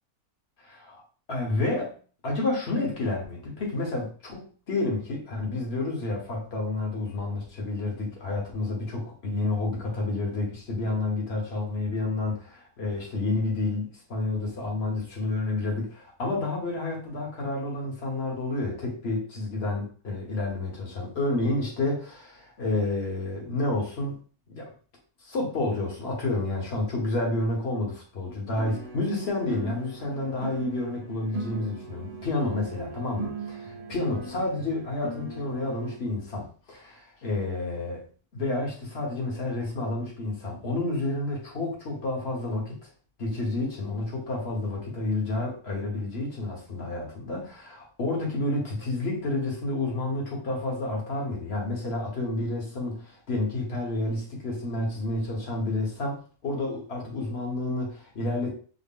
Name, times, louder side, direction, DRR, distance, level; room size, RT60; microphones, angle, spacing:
voice 1, 0.6-1.0 1.3-1.9 2.2-24.2 24.5-24.7 25.2-38.0 38.3-42.9 43.2-58.5, left 2 dB, 45° left, -1 dB, 1.2 m, -30 dB
sound 1, 28.6-36.0, right 3 dB, 75° right, 1.2 m, -39 dB
4.1 x 2.0 x 3.6 m, 0.41 s
omnidirectional pair, 1.6 m